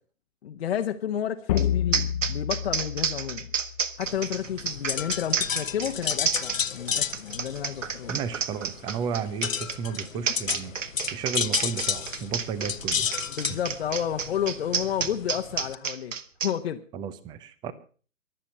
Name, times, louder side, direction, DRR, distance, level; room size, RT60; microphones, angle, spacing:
voice 1, 0.4-3.5 4.0-8.2 13.4-16.1 16.4-16.8, left 9 dB, 50° left, 5 dB, 1.2 m, -31 dB
sound 1, 1.5-4.1, left 10 dB, 30° left, 1.1 m, -29 dB
sound 2, 1.6-1.7 1.9-16.5, right 6 dB, 70° right, 1.6 m, -30 dB
sound 3, 4.0-15.8, left 7 dB, 75° left, 1.1 m, -32 dB
voice 2, 8.1-13.2 13.5-13.6 16.9-17.7, right 7 dB, 10° right, 17 dB, 0.7 m, -33 dB
23.5 x 8.4 x 5.5 m, 0.40 s
figure-of-eight pair, 135°, 39 cm